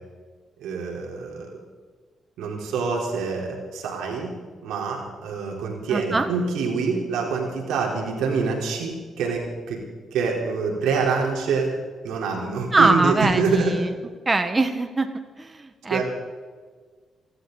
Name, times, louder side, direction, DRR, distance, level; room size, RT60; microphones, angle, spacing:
voice 1, 0.6-1.5 2.4-4.3 4.6-9.8 10.1-11.8 12.0-13.7 15.9-16.0, right 4 dB, 85° right, 0 dB, 3.7 m, -26 dB
voice 2, 5.9-6.3 12.7-13.9 14.2-16.0, right 3 dB, 30° right, 7 dB, 1.4 m, -22 dB
29.5 x 12.0 x 4.0 m, 1.5 s
supercardioid pair, 55°, 0 cm